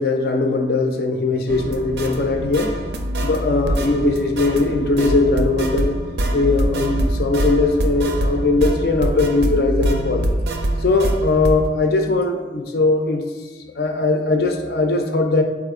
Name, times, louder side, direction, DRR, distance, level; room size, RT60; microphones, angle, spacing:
voice 1, 0.0-2.7 3.2-6.0 6.3-10.3 10.8-13.2 13.8-15.4, left 3 dB, 60° left, 3 dB, 0.4 m, -19 dB
sound 1, 1.5-11.7, right 1 dB, 70° right, 0.5 m, -24 dB
4.2 x 2.4 x 4.7 m, 1.3 s
head